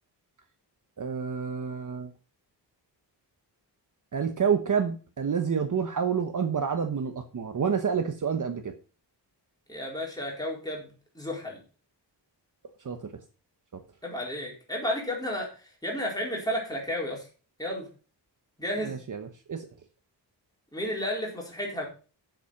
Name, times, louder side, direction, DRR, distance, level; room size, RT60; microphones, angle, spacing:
voice 1, 1.0-2.1 4.1-8.7 12.8-13.0 13.7-13.8 18.8-19.7, right 6 dB, 45° right, 6 dB, 1.1 m, -28 dB
voice 2, 9.7-11.6 14.0-17.2 17.6-17.9 18.6-19.0 20.7-21.9, left 1 dB, 10° left, -2 dB, 4.2 m, -32 dB
8.0 x 7.1 x 5.9 m, 0.36 s
wide cardioid pair, 140°, 43 cm